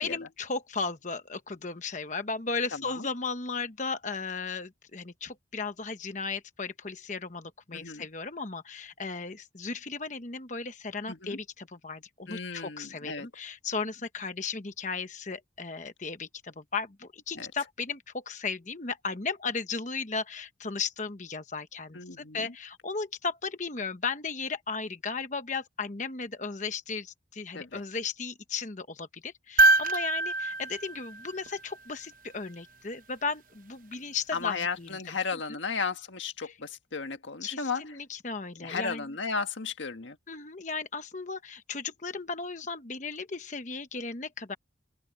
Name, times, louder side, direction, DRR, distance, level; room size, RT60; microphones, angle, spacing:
voice 1, 0.0-35.2 35.5-35.6 36.4-36.6 37.4-39.1 40.3-44.5, left 4 dB, 40° left, 1.1 m, -35 dB
voice 2, 2.7-3.1 7.7-8.0 11.1-11.4 12.3-13.3 17.3-17.5 21.9-22.5 27.5-27.8 34.3-37.8 38.6-40.2, left 5 dB, 85° left, 1.6 m, -34 dB
sound 1, 29.6-31.9 33.9-34.0, right 2 dB, 45° right, 0.8 m, -25 dB
open air
head